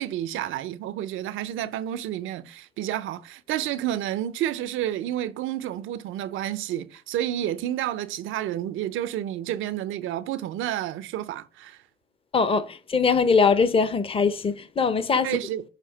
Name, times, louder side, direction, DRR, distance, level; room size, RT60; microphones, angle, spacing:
voice 1, 0.0-11.8 15.2-15.6, right 12 dB, 85° right, 0.6 m, -30 dB
voice 2, 12.3-15.3, left 5 dB, 30° left, 0.7 m, -22 dB
6.7 x 2.7 x 5.4 m
cardioid pair, 90°, 20 cm